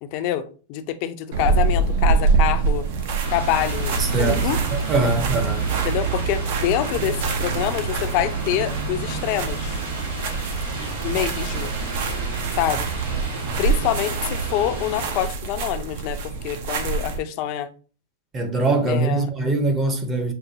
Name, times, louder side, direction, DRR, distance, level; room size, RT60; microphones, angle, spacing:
voice 1, 0.0-2.9 3.3-4.6 5.8-9.8 11.0-11.7 12.6-12.9 13.6-17.7 18.9-19.3, left 11 dB, 45° left, 0.5 m, -26 dB
sound 1, 1.3-17.2, right 4 dB, 60° right, 0.7 m, -26 dB
sound 2, 3.2-15.3, right 4 dB, 85° right, 2.3 m, -29 dB
voice 2, 4.0-5.7 18.3-20.3, right 2 dB, 20° right, 0.8 m, -23 dB
6.5 x 2.2 x 2.7 m
supercardioid pair, 145°, 0 cm